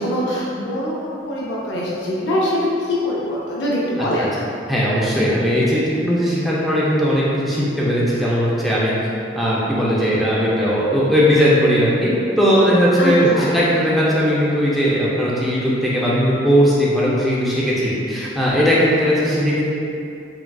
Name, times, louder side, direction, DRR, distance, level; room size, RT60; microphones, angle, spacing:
voice 1, 0.0-4.3 13.0-13.6, left 1 dB, 75° left, -5 dB, 0.4 m, -23 dB
voice 2, 4.7-8.9 9.4-19.6, equal, ahead, -8 dB, 0.3 m, -18 dB
3.6 x 2.3 x 2.2 m, 2.6 s
head